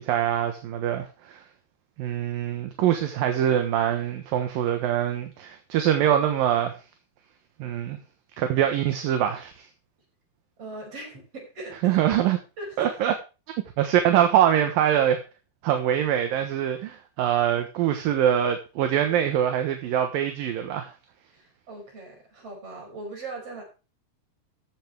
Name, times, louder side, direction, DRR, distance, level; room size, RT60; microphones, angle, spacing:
voice 1, 0.0-1.4 2.0-6.7 7.6-8.0 8.4-9.7 11.8-12.4 12.8-13.1 13.8-15.2 15.6-20.9, right 10 dB, 65° right, 2.7 m, -24 dB
voice 2, 10.6-12.3 12.6-13.0 21.3-23.6, right 2 dB, 35° right, 6.9 m, -40 dB
14.5 x 10.5 x 3.5 m
omnidirectional pair, 4.7 m